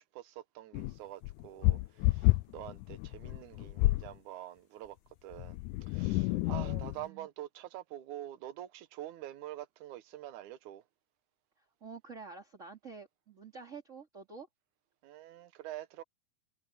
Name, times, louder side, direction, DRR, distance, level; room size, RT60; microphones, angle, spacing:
voice 1, 0.0-10.8 15.0-16.0, right 13 dB, 75° right, 2.5 m, -46 dB
sound 1, 0.7-4.1 5.3-7.0, left 19 dB, 80° left, 1.9 m, -30 dB
voice 2, 6.5-7.3 11.8-14.5, right 5 dB, 25° right, 2.9 m, -48 dB
omnidirectional pair, 3.7 m